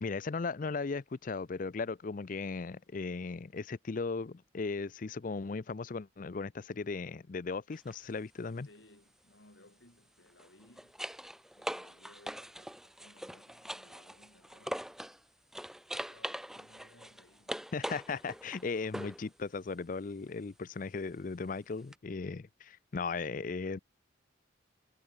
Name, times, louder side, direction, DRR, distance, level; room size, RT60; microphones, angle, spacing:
voice 1, 0.0-8.7 17.7-23.8, left 4 dB, 45° left, 0.5 m, -37 dB
sound 1, 7.7-8.0 10.3-15.2 15.5-19.3 21.9-22.0, equal, ahead, 1.3 m, -42 dB
voice 2, 8.6-11.0 11.6-15.0 16.1-17.7, left 1 dB, 75° left, 5.5 m, -62 dB
head